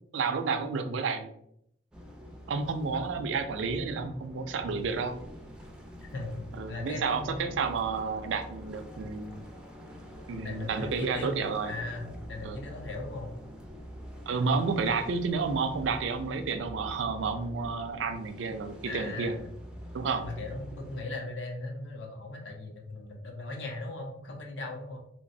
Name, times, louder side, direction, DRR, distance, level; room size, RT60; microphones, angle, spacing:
voice 1, 0.1-1.3 2.5-5.2 6.6-9.4 10.3-11.7 12.4-12.6 14.3-19.3 19.9-20.3, right 4 dB, 80° right, 8 dB, 0.4 m, -31 dB
sound 1, 1.9-21.0, equal, 5° right, 0.4 m, -45 dB
voice 2, 6.1-7.5 10.4-13.3 18.9-19.5 20.2-25.0, left 2 dB, 70° left, 2 dB, 0.6 m, -38 dB
3.1 x 2.9 x 2.6 m, 0.74 s
head